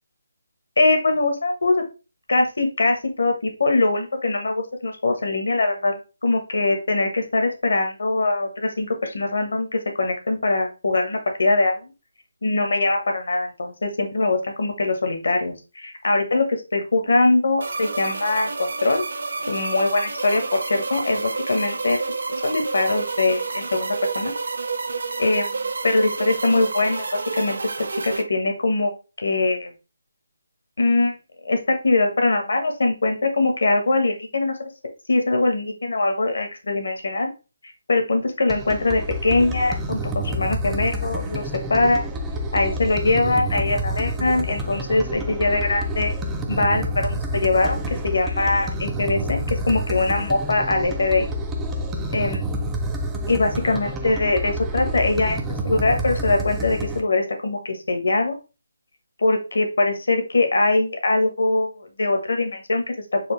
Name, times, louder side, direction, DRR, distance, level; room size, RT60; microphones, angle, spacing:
voice 1, 0.8-1.8 2.3-11.9 12.4-16.5 16.7-19.0 19.5-22.0 22.4-24.3 25.2-25.4 25.8-27.6 27.9-28.9 29.2-29.7 30.8-31.1 31.4-34.7 35.1-37.3 37.9-41.4 41.7-42.0 42.5-46.1 46.5-51.3 52.1-52.4 53.3-58.4 59.2-63.3, left 2 dB, 65° left, 5 dB, 1.1 m, -22 dB
sound 1, 17.6-28.2, right 4 dB, 60° right, 0.6 m, -29 dB
sound 2, 38.5-57.0, equal, 5° right, 0.3 m, -28 dB
4.3 x 2.5 x 3.2 m, 0.31 s
hypercardioid pair, 175°, 0 cm